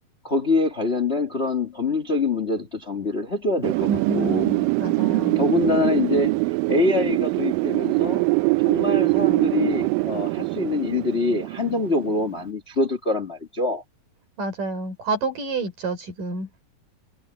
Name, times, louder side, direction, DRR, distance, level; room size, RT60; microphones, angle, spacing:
voice 1, 0.2-4.5 5.3-8.2 8.6-13.8, left 3 dB, 25° left, 1.6 m, -25 dB
Wind, 3.6-12.3, right 24 dB, 85° right, 2.3 m, -23 dB
voice 2, 3.9-5.4 14.4-16.5, right 2 dB, 70° right, 7.7 m, -29 dB
omnidirectional pair, 3.9 m